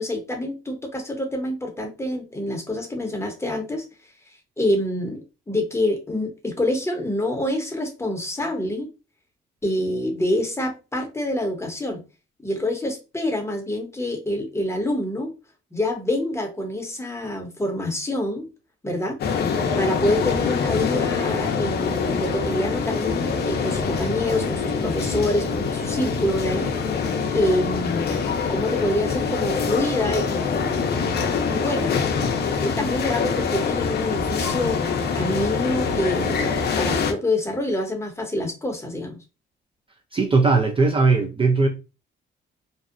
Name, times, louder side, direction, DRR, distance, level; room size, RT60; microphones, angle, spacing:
voice 1, 0.0-3.8 4.6-8.9 9.6-12.0 12.4-15.3 15.7-18.5 18.8-19.2 19.8-26.7 27.3-31.9 32.5-34.8 35.1-39.2, left 1 dB, 15° left, 0.8 m, -26 dB
sound 1, 19.2-37.1, left 5 dB, 55° left, 0.5 m, -24 dB
voice 2, 40.1-41.7, right 3 dB, 25° right, 0.4 m, -18 dB
2.6 x 2.0 x 2.4 m
cardioid pair, 90°, 20 cm